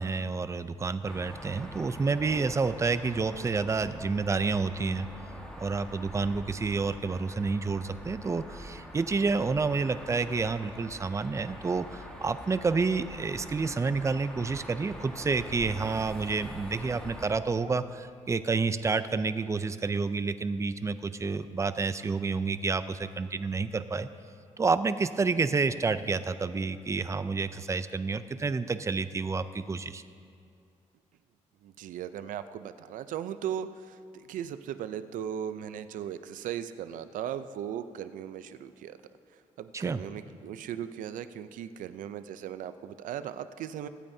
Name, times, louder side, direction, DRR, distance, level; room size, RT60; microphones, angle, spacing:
voice 1, 0.0-5.1 5.6-24.1 24.6-30.0 39.7-40.0, right 4 dB, 20° right, 13 dB, 0.4 m, -29 dB
sound 1, 1.0-17.4, equal, 5° left, 1.6 m, -44 dB
voice 2, 31.6-39.0 39.6-43.9, right 9 dB, 90° right, 12 dB, 0.5 m, -37 dB
23.0 x 8.9 x 2.7 m, 2.3 s
cardioid pair, 110°, 13 cm